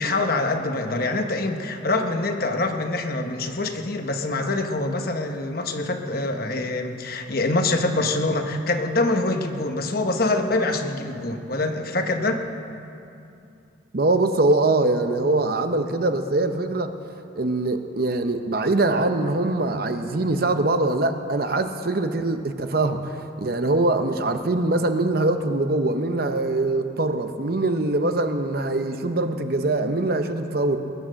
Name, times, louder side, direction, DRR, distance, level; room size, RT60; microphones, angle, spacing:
voice 1, 0.0-12.4, left 2 dB, 50° left, 5 dB, 1.1 m, -25 dB
voice 2, 13.9-16.9 17.4-30.8, right 2 dB, 50° right, 8 dB, 0.8 m, -23 dB
21.0 x 9.8 x 6.3 m, 2.6 s
head